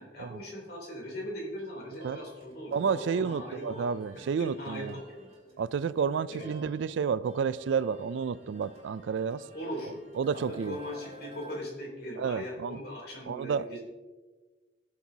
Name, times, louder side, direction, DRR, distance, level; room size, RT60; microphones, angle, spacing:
voice 1, 0.0-3.8 4.4-5.0 6.3-6.5 9.5-10.0 10.5-13.8, equal, 50° left, -3 dB, 3.3 m, -39 dB
sound 1, 1.6-11.6, right 1 dB, 35° right, 2.8 m, -52 dB
voice 2, 2.7-4.9 5.6-9.4 10.2-10.8 12.2-12.8 13.3-13.8, right 6 dB, 70° right, 18 dB, 0.3 m, -30 dB
16.5 x 7.4 x 2.8 m, 1.3 s
head